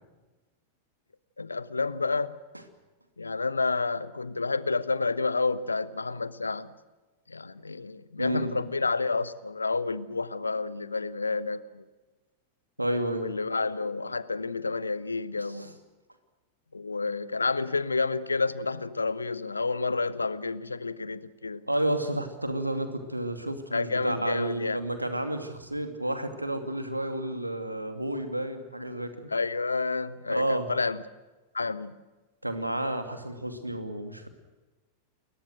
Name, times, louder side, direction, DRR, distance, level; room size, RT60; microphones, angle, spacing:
voice 1, 1.4-2.4 3.2-6.7 7.3-11.8 13.2-15.7 16.7-21.6 23.7-24.8 29.3-31.0 31.5-32.0, left 3 dB, 80° left, 1.0 m, -30 dB
voice 2, 8.2-8.5 12.8-13.3 15.4-15.7 21.7-29.3 30.3-30.7 32.4-34.3, right 1 dB, 85° right, 2.6 m, -31 dB
29.5 x 22.0 x 6.4 m
figure-of-eight pair, 90°, 0 cm